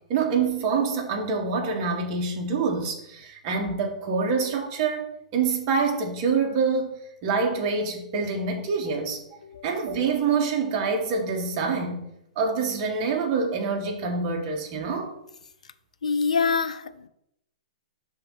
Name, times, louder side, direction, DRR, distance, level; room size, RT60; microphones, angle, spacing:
voice 1, 0.1-9.2 9.6-12.1 12.3-15.1, right 5 dB, 40° right, 1.6 m, -26 dB
voice 2, 9.4-9.7 16.0-17.1, left 5 dB, 75° left, 0.5 m, -26 dB
5.6 x 3.7 x 5.7 m
figure-of-eight pair, 115°, 4 cm